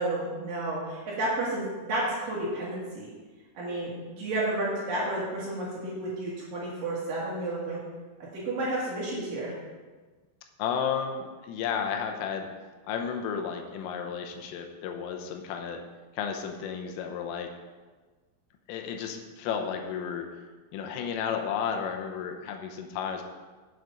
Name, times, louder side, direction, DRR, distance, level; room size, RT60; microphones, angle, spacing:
voice 1, 0.0-3.1 3.5-7.8 8.3-9.5, right 1 dB, 55° right, -6 dB, 3.0 m, -31 dB
voice 2, 10.6-12.5 12.9-15.8 16.2-17.5 18.7-20.3 20.7-23.2, left 7 dB, 85° left, 4 dB, 3.4 m, -32 dB
8.1 x 8.0 x 5.1 m, 1.3 s
omnidirectional pair, 5.9 m